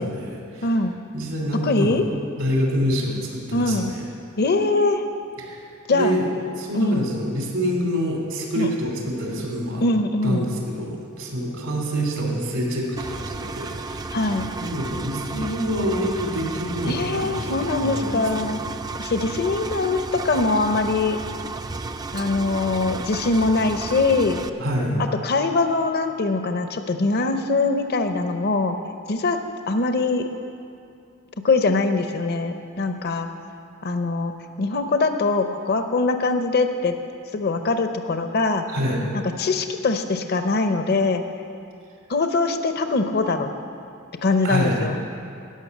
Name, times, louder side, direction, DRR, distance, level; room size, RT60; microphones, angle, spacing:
voice 1, 0.0-0.7 1.1-2.0 2.4-4.0 5.4-5.6 5.9-6.3 6.6-9.8 10.2-14.2 14.6-18.5 24.6-24.9 38.7-39.0 44.4-44.8, equal, 85° right, -1 dB, 2.8 m, -26 dB
voice 2, 0.6-1.0 1.6-2.1 3.5-3.9 4.4-5.0 5.9-6.2 6.7-7.1 8.6-8.7 9.8-10.4 14.1-14.5 16.9-18.6 19.0-21.2 22.1-24.4 25.2-28.7 29.1-29.4 29.7-30.2 31.4-33.3 33.8-34.3 34.6-36.9 37.3-38.6 39.2-41.2 42.1-43.5 44.2-45.0, left 3 dB, 50° left, 7 dB, 0.6 m, -22 dB
Engine, 13.0-24.5, right 3 dB, 20° right, 0.3 m, -33 dB
14.0 x 5.9 x 9.3 m, 2.5 s
head